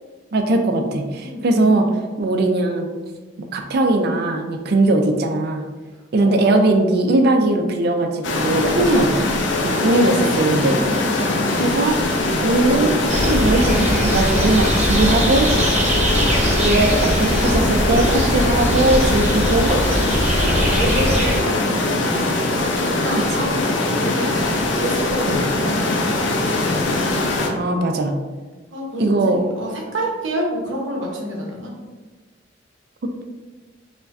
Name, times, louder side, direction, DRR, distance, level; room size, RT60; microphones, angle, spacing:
voice 1, 0.3-1.9 2.2-2.9 3.5-5.6 6.1-9.1 9.6-10.8 11.5-12.0 12.4-15.5 16.6-20.0 25.3-25.4 27.5-28.1 29.0-29.4, right 2 dB, 55° right, 4 dB, 0.4 m, -19 dB
voice 2, 1.2-1.7 6.2-6.7 9.7-11.5 16.5-17.0 20.6-24.3 24.7-26.8 27.0-27.3 28.7-31.7, equal, 85° right, -1 dB, 0.8 m, -29 dB
sound 1, 8.2-27.5, left 2 dB, 70° left, 0.5 m, -21 dB
sound 2, 13.1-21.4, equal, 35° right, 0.8 m, -21 dB
4.6 x 2.2 x 2.5 m, 1.3 s
head